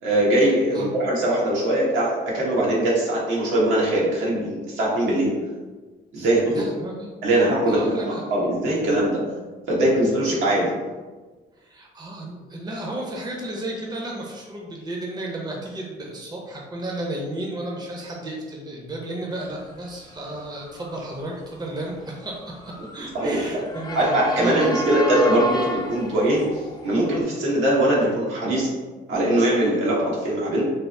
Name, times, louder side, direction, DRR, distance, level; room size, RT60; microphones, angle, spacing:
voice 1, 0.0-5.3 6.1-6.6 7.2-9.2 9.7-10.7 23.1-23.6 23.9-26.5 26.8-28.7 29.1-30.7, right 1 dB, 80° right, -5 dB, 1.2 m, -21 dB
voice 2, 6.2-8.2 11.6-24.9, right 1 dB, 20° right, -2 dB, 0.7 m, -33 dB
Motor vehicle (road) / Siren, 19.9-27.2, equal, 20° left, 0.6 m, -33 dB
3.4 x 2.0 x 4.1 m, 1.3 s
cardioid pair, 90°, 20 cm